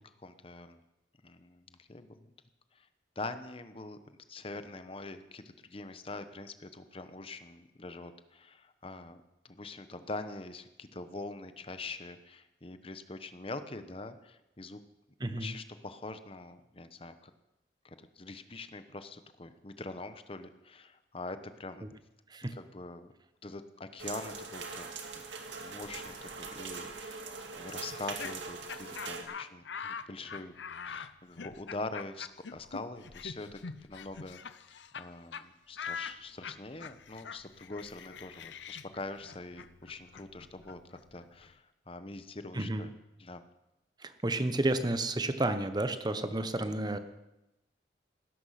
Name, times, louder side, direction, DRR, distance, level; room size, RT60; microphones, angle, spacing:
voice 1, 0.0-0.8 1.2-2.3 2.7-2.9 3.2-4.0 4.3-14.8 15.4-17.3 17.8-21.9 22.5-23.1 23.4-25.2 25.6-27.2 27.6-30.6 30.8-34.4 34.7-42.9 43.2-43.4, left 2 dB, 30° left, 10 dB, 0.9 m, -44 dB
voice 2, 15.2-15.5 22.3-22.5 42.5-42.9 44.0-47.0, right 2 dB, 25° right, 10 dB, 1.0 m, -31 dB
sound 1, 24.0-29.2, right 4 dB, 85° right, 2.0 m, -42 dB
Laughter, 27.9-35.1 35.3-35.4 35.8-41.5, left 6 dB, 80° left, 0.7 m, -44 dB
16.0 x 13.0 x 5.8 m, 0.94 s
head